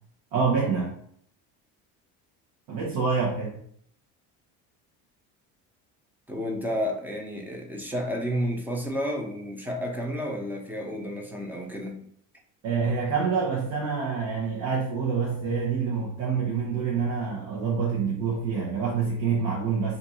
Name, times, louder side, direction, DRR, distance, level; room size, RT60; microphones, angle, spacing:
voice 1, 0.3-0.9 2.7-3.5 12.6-20.0, right 5 dB, 80° right, -4 dB, 0.9 m, -26 dB
voice 2, 6.3-12.0, equal, 5° right, 0 dB, 0.6 m, -31 dB
2.6 x 2.5 x 4.2 m, 0.66 s
cardioid pair, 110°, 35 cm